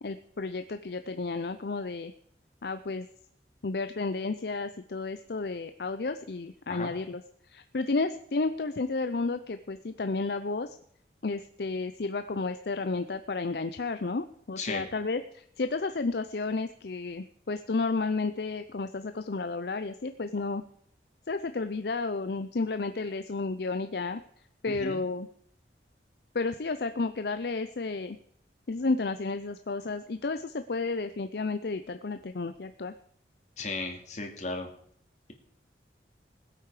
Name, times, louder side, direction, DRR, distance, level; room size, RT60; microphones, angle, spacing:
voice 1, 0.0-2.1 2.6-3.1 3.6-7.2 7.5-10.7 11.2-20.6 21.3-24.2 24.6-25.3 26.3-28.2 28.7-32.9, left 3 dB, 65° left, 10 dB, 0.6 m, -32 dB
voice 2, 14.6-14.9 24.7-25.0 33.6-34.7, left 3 dB, 40° left, 3 dB, 2.6 m, -35 dB
20.0 x 8.6 x 4.9 m, 0.68 s
head